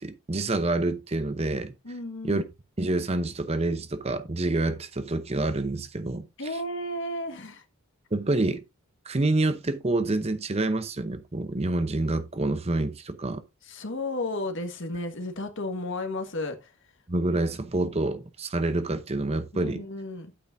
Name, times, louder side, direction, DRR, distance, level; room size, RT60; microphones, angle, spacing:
voice 1, 0.0-1.7 2.2-2.4 2.8-6.3 8.1-8.6 9.1-13.4 17.1-19.8, right 2 dB, 30° right, 0.8 m, -27 dB
voice 2, 1.8-2.4 6.4-7.6 13.7-16.7 19.5-20.3, left 2 dB, 60° left, 1.5 m, -33 dB
9.9 x 8.6 x 2.6 m
head